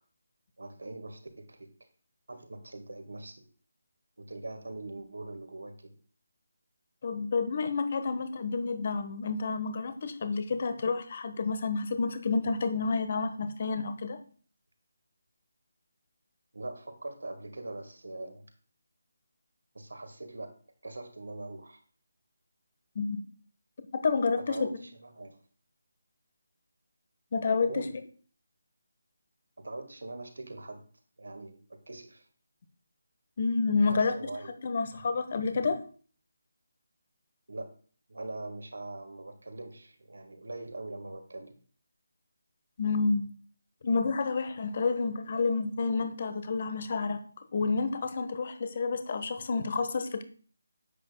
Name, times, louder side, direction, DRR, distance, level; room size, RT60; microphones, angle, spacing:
voice 1, 0.6-1.7 2.3-3.3 4.2-5.9 16.5-18.4 19.7-20.5 20.8-21.8 24.5-25.4 27.7-27.9 29.6-30.9 31.2-32.3 33.8-34.5 37.5-37.7 38.1-41.6, right 2 dB, 60° right, 7 dB, 1.5 m, -42 dB
voice 2, 7.0-14.2 22.9-23.2 24.0-24.6 27.3-27.8 33.4-34.1 34.6-35.8 42.8-43.3 43.8-47.2 47.5-50.2, left 4 dB, 35° left, 9 dB, 0.9 m, -29 dB
10.0 x 7.9 x 2.2 m, 0.42 s
figure-of-eight pair, 155°, 0 cm